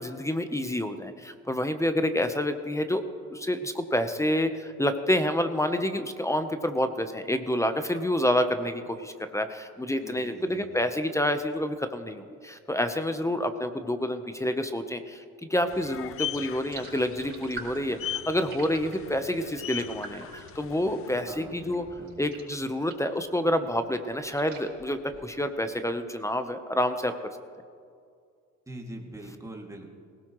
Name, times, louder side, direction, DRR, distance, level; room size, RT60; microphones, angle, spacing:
voice 1, 0.0-3.0 3.3-21.8 22.2-27.1, left 1 dB, 10° left, 8 dB, 0.8 m, -28 dB
voice 2, 10.0-10.7 21.2-22.2 28.7-29.9, right 1 dB, 10° right, 0 dB, 2.3 m, -43 dB
sound 1, 15.7-21.2, left 12 dB, 50° left, 0.4 m, -39 dB
sound 2, 16.7-23.2 23.6-25.6, right 3 dB, 40° right, 4.7 m, -46 dB
19.0 x 17.5 x 3.1 m, 2.2 s
cardioid pair, 90°, 30 cm